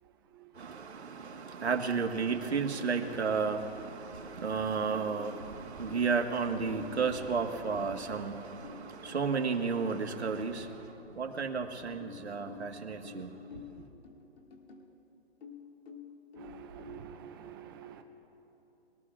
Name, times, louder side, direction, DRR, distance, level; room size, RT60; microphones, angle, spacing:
voice 1, 0.5-13.8, right 5 dB, 90° right, 1.6 m, -33 dB
sound 1, 4.8-6.2 6.7-10.5 12.0-14.9 15.4-17.0, left 6 dB, 70° left, 2.5 m, -50 dB
voice 2, 16.4-18.0, right 8 dB, 20° right, 0.6 m, -47 dB
24.0 x 15.0 x 2.5 m
hypercardioid pair, 155°, 32 cm